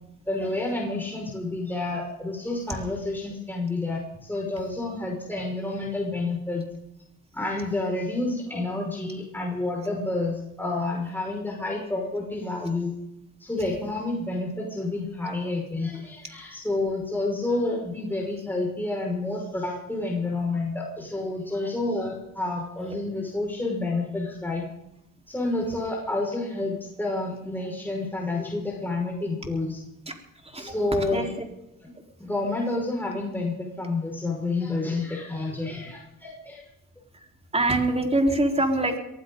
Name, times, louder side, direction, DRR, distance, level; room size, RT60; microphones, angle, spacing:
voice 1, 0.3-6.6 7.3-12.9 13.4-24.6 25.3-29.8 30.5-31.3 31.8-31.9 32.2-36.6, left 2 dB, 5° left, -2 dB, 5.7 m, -29 dB
voice 2, 37.5-39.0, right 2 dB, 15° right, 2 dB, 4.2 m, -23 dB
23.0 x 15.5 x 4.0 m, 0.83 s
supercardioid pair, 75°, 35 cm